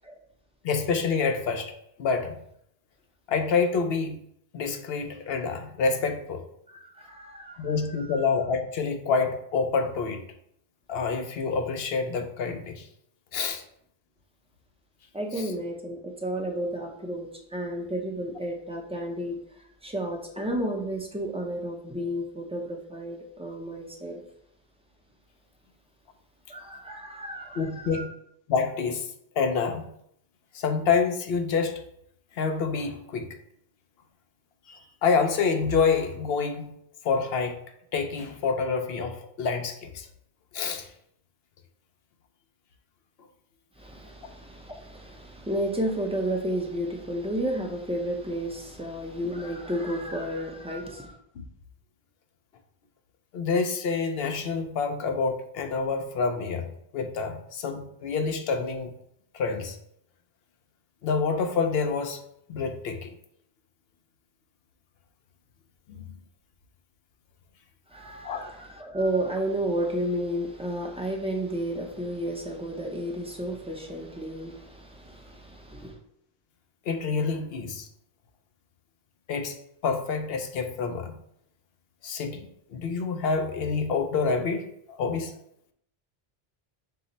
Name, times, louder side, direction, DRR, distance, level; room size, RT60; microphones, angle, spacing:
voice 1, 0.6-1.7 2.0-2.4 3.3-4.1 4.5-6.5 7.6-10.2 10.9-12.9 13.3-13.6 15.4-15.5 27.6-28.1 28.5-29.1 29.4-29.9 30.5-31.8 32.4-33.4 34.7-36.7 37.0-37.6 37.9-40.1 40.5-40.9 51.4-51.5 53.3-58.9 59.3-59.8 61.0-62.2 62.5-63.1 66.0-66.1 68.2-68.5 76.9-77.9 79.3-79.6 79.8-81.2 82.0-85.3, left 5 dB, 75° left, 0.8 m, -27 dB
voice 2, 6.7-8.2 15.1-19.4 19.8-24.2 26.5-28.1 43.8-51.1 67.9-76.0, right 1 dB, 10° right, 0.5 m, -32 dB
5.7 x 2.0 x 3.9 m
omnidirectional pair, 1.1 m